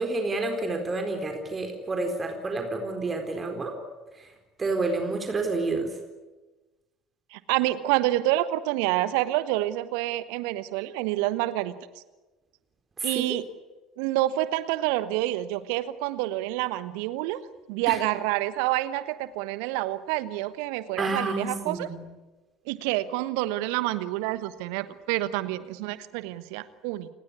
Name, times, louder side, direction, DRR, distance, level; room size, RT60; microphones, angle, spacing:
voice 1, 0.0-3.7 4.1-4.3 4.6-6.0 13.0-13.2 17.9-18.0 21.0-22.0, right 3 dB, 25° right, 5 dB, 4.2 m, -29 dB
voice 2, 7.3-11.7 13.0-13.5 14.0-17.4 17.7-21.9 22.7-27.1, right 16 dB, 60° right, 15 dB, 1.2 m, -28 dB
29.5 x 19.5 x 9.8 m, 1.2 s
figure-of-eight pair, 65°, 0 cm